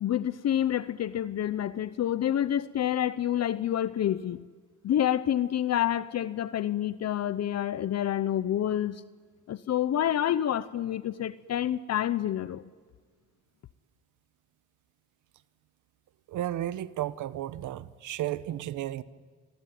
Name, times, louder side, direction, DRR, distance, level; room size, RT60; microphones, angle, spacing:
voice 1, 0.0-4.5 4.8-9.0 9.5-12.6, left 11 dB, 60° left, 0.9 m, -28 dB
voice 2, 16.3-19.0, right 13 dB, 80° right, 1.1 m, -33 dB
28.0 x 22.5 x 9.5 m
cardioid pair, 90°, 30 cm